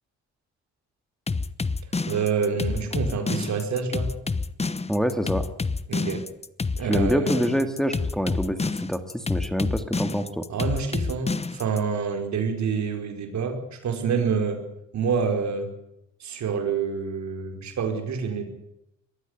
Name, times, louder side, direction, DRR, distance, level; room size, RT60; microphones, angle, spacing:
sound 1, 1.3-11.8, left 4 dB, 20° left, 1.0 m, -28 dB
voice 1, 2.1-4.1 5.9-6.3 6.8-7.3 10.5-14.6 14.9-15.7 16.2-18.5, right 6 dB, 65° right, 5 dB, 5.0 m, -27 dB
voice 2, 4.9-5.4 6.8-10.4, equal, ahead, 7 dB, 2.2 m, -26 dB
22.0 x 15.0 x 9.5 m, 0.84 s
cardioid pair, 90°, 30 cm